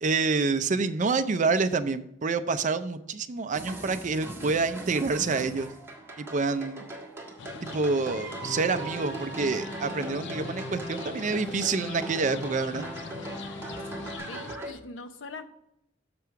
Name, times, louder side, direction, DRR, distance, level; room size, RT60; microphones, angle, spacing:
voice 1, 0.0-5.7 6.2-6.9 7.7-12.9, right 4 dB, 40° right, 11 dB, 0.5 m, -27 dB
sound 1, 3.5-14.7, right 2 dB, 15° right, 1.5 m, -40 dB
sound 2, 7.4-14.6, left 5 dB, 65° left, 0.4 m, -44 dB
sound 3, 8.4-14.2, left 1 dB, 20° left, 0.8 m, -40 dB
voice 2, 14.3-15.4, left 3 dB, 85° left, 9 dB, 0.8 m, -42 dB
6.8 x 6.0 x 4.7 m, 0.80 s
head